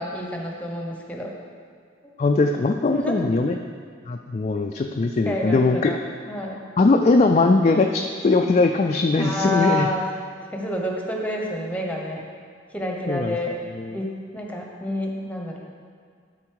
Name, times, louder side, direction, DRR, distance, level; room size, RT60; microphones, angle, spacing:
voice 1, 0.0-1.3 2.0-2.1 2.9-3.2 5.2-6.0 6.3-6.6 9.2-10.0 10.5-12.2 12.7-13.5 13.9-15.6, left 1 dB, 10° left, -1 dB, 1.0 m, -28 dB
voice 2, 2.2-3.6 4.1-5.9 6.8-9.9 13.1-13.4 13.7-14.0, left 3 dB, 35° left, 3 dB, 0.3 m, -20 dB
12.5 x 4.2 x 4.7 m, 2.1 s
head